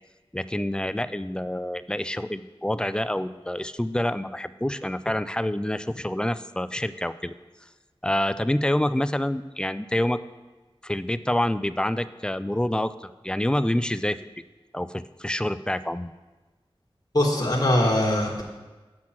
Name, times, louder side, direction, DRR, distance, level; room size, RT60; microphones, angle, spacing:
voice 1, 0.3-7.4 8.0-10.2 10.8-14.2 14.7-16.1, left 1 dB, 10° left, 14 dB, 0.3 m, -27 dB
voice 2, 17.1-18.4, left 1 dB, 40° left, -2 dB, 1.5 m, -22 dB
7.5 x 6.1 x 5.8 m, 1.2 s
wide cardioid pair, 40°, 10 cm